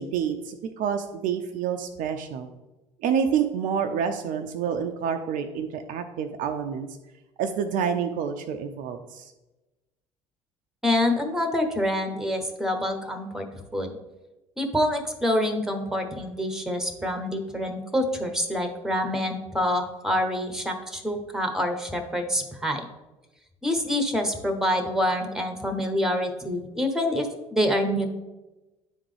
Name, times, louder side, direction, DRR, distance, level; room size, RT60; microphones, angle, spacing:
voice 1, 0.0-2.5 3.0-6.9 7.4-9.3, right 7 dB, 50° right, 6 dB, 0.5 m, -28 dB
voice 2, 10.8-13.9 14.6-22.8 23.6-28.1, left 1 dB, 5° right, 6 dB, 1.1 m, -26 dB
9.9 x 3.6 x 3.4 m, 1.1 s
figure-of-eight pair, 60°, 17 cm